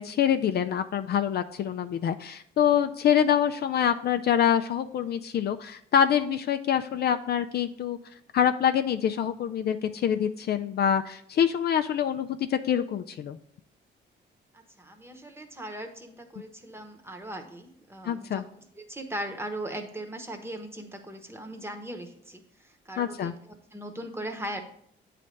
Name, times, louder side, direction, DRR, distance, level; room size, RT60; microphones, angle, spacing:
voice 1, 0.0-8.0 8.3-13.4 18.1-18.4 23.0-23.3, left 9 dB, 55° left, 8 dB, 0.4 m, -25 dB
voice 2, 14.5-18.4 18.7-24.6, right 1 dB, 10° right, 5 dB, 1.0 m, -39 dB
8.3 x 3.3 x 5.2 m, 0.69 s
cardioid pair, 90°, 20 cm